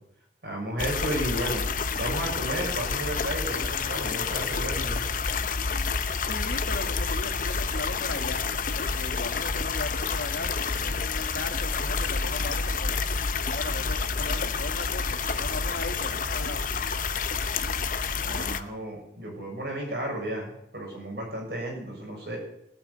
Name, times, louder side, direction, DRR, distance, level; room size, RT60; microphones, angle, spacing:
voice 1, 0.4-1.6 2.0-5.0 18.2-22.4, right 1 dB, 60° right, 0 dB, 6.3 m, -33 dB
sound 1, 0.8-18.6, left 5 dB, 45° left, 0.8 m, -29 dB
voice 2, 6.2-13.0 13.5-16.6, left 2 dB, 70° left, 6 dB, 1.7 m, -38 dB
17.0 x 8.8 x 8.0 m, 0.77 s
head